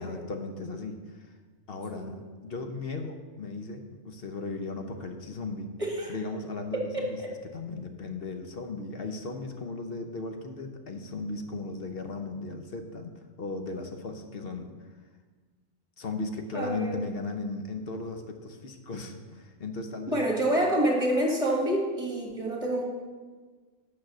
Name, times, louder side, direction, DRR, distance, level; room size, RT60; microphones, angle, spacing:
voice 1, 0.0-1.3 1.7-5.7 6.1-7.2 7.5-14.7 16.0-20.2, left 3 dB, 50° left, 5 dB, 0.9 m, -36 dB
voice 2, 6.7-7.0 16.5-17.0 20.1-22.8, right 1 dB, 25° right, -1 dB, 1.7 m, -27 dB
8.9 x 6.1 x 6.2 m, 1.4 s
omnidirectional pair, 1.3 m